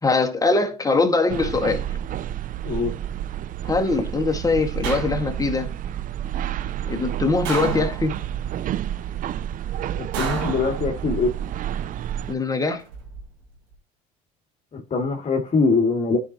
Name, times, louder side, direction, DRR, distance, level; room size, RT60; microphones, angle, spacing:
voice 1, 0.0-1.9 3.6-5.7 6.9-8.2 12.3-12.8, left 3 dB, 15° left, 2.0 m, -22 dB
sound 1, 1.3-12.4, right 11 dB, 45° right, 0.5 m, -30 dB
sound 2, 4.8-5.6 7.5-8.4 10.1-11.3 12.7-13.2, right 6 dB, 65° right, 3.5 m, -32 dB
voice 2, 10.0-11.3 14.7-16.2, left 4 dB, 35° left, 2.3 m, -22 dB
13.5 x 5.5 x 3.0 m
hypercardioid pair, 70°, 20 cm